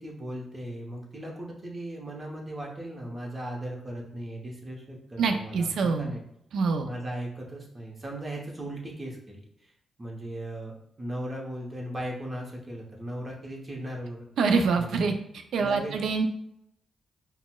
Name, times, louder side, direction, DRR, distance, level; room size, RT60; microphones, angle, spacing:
voice 1, 0.0-6.2 6.8-9.7 10.0-10.7 11.0-14.3 14.7-15.2 15.6-16.0, right 1 dB, 30° right, -1 dB, 0.8 m, -37 dB
voice 2, 5.2-6.1 6.5-6.9 14.4-15.1 15.5-16.2, right 4 dB, 80° right, 6 dB, 0.3 m, -25 dB
4.0 x 2.1 x 2.2 m, 0.75 s
cardioid pair, 70°, 0 cm